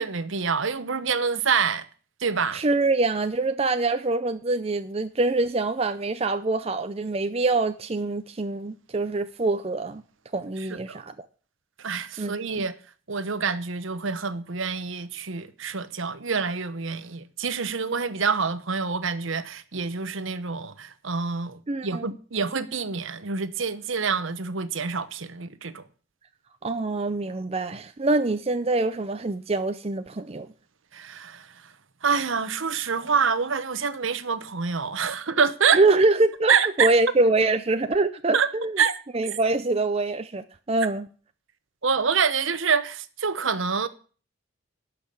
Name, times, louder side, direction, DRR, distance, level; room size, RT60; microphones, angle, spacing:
voice 1, 0.0-1.8 2.2-2.6 10.6-11.0 11.8-12.7 13.1-25.8 30.9-31.5 32.0-35.8 36.5-36.9 38.3-38.5 38.8-38.9 41.8-43.9, right 5 dB, 65° right, 1.0 m, -26 dB
voice 2, 2.5-10.0 10.3-11.1 12.2-12.3 21.7-22.1 26.6-30.5 35.7-38.8 39.1-41.1, right 2 dB, 30° right, 0.5 m, -24 dB
12.0 x 5.8 x 8.5 m
head